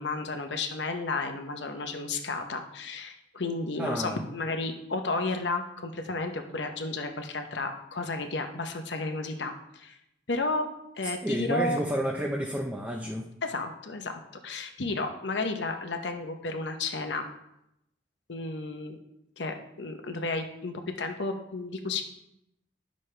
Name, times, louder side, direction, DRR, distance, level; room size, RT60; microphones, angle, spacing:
voice 1, 0.0-10.0 10.3-10.7 11.0-11.8 13.4-17.3 18.3-19.0 19.4-22.0, left 3 dB, 70° left, 5 dB, 0.9 m, -32 dB
voice 2, 3.8-4.2 11.2-13.3, equal, 10° right, -1 dB, 0.6 m, -30 dB
10.5 x 6.3 x 3.3 m, 0.83 s
head